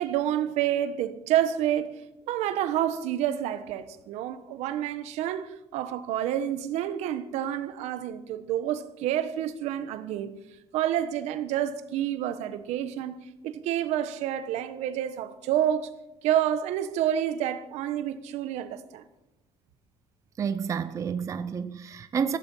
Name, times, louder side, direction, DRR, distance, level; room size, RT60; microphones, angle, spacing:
voice 1, 0.0-1.9 2.3-10.3 10.7-15.9 16.2-19.0, right 11 dB, 75° right, 1.3 m, -28 dB
voice 2, 20.4-22.4, right 7 dB, 30° right, 0.6 m, -30 dB
16.0 x 15.0 x 5.6 m
cardioid pair, 160°, 11 cm